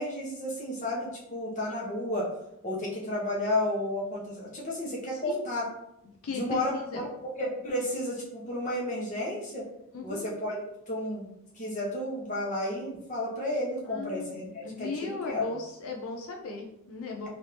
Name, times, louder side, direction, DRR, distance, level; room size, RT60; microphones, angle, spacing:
voice 1, 0.0-2.3 2.6-5.6 6.3-7.1 7.4-9.7 10.0-11.3 11.6-15.5, left 1 dB, 35° left, -4 dB, 0.9 m, -32 dB
voice 2, 5.1-5.5 6.2-7.0 9.9-10.3 13.9-17.3, left 3 dB, 80° left, 1 dB, 0.4 m, -37 dB
3.3 x 2.6 x 2.9 m, 0.83 s
head